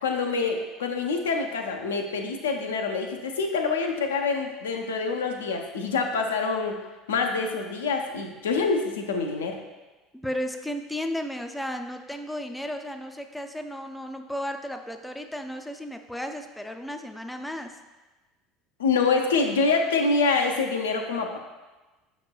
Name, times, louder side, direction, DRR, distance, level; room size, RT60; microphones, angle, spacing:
voice 1, 0.0-6.8 7.1-9.6 18.8-21.4, left 4 dB, 80° left, 3 dB, 0.4 m, -26 dB
voice 2, 10.2-17.7, equal, 5° left, 6 dB, 0.3 m, -34 dB
5.7 x 3.0 x 2.2 m, 1.2 s
hypercardioid pair, 70°, 0 cm